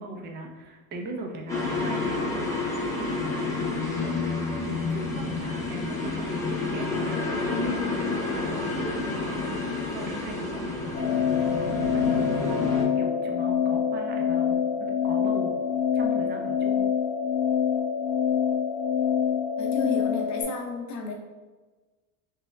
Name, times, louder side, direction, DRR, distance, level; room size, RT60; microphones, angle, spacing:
voice 1, 0.0-2.5 2.9-9.6 9.9-15.7 15.9-16.8, right 2 dB, 25° right, 2 dB, 0.5 m, -39 dB
sound 1, 1.5-12.8, left 3 dB, 5° left, 0.8 m, -29 dB
sound 2, 10.9-20.4, left 7 dB, 80° left, 0.9 m, -25 dB
voice 2, 19.6-21.1, left 3 dB, 40° left, 0 dB, 0.8 m, -33 dB
3.3 x 2.9 x 3.2 m, 1.3 s
supercardioid pair, 110°, 45 cm